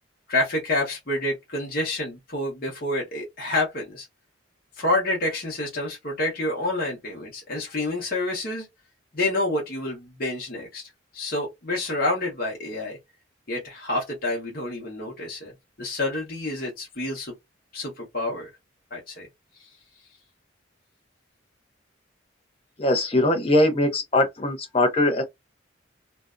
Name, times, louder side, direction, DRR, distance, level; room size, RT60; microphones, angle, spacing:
voice 1, 0.3-4.1 4.8-8.7 9.1-13.0 13.5-15.5 15.8-17.3 17.7-18.5 18.9-19.3, left 2 dB, 50° left, 0.9 m, -28 dB
voice 2, 22.8-25.2, left 1 dB, 30° left, 0.6 m, -21 dB
2.6 x 2.2 x 2.4 m
head